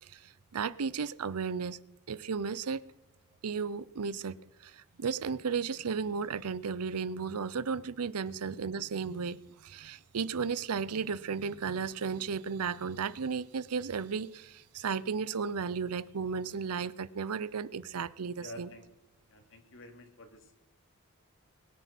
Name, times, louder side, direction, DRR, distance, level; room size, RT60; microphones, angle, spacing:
voice 1, 0.0-1.8 2.1-2.8 3.4-18.7, right 5 dB, 85° right, 0.6 m, -34 dB
voice 2, 18.4-18.9 19.3-20.6, left 1 dB, 60° left, 2.6 m, -49 dB
21.5 x 9.2 x 5.9 m
head